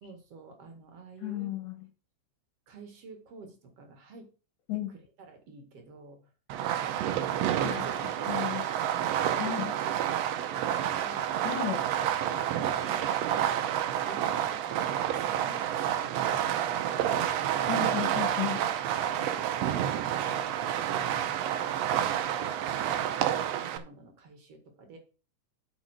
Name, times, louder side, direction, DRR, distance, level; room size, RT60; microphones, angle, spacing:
voice 1, 0.0-1.6 2.7-4.3 5.3-6.3 7.7-9.8 10.0-11.4 11.6-11.7 12.2-13.2 13.6-17.9 18.6-19.4 19.8-22.3 23.6-25.0, right 3 dB, 50° right, 4 dB, 2.5 m, -50 dB
voice 2, 1.2-1.8 4.7-4.9 7.6-8.6 9.3-9.7 11.4-11.8 17.7-18.6, left 10 dB, 70° left, 6 dB, 2.6 m, -34 dB
Fireworks, 6.5-23.8, right 10 dB, 75° right, 1.5 m, -29 dB
8.2 x 5.4 x 6.3 m, 0.36 s
omnidirectional pair, 3.8 m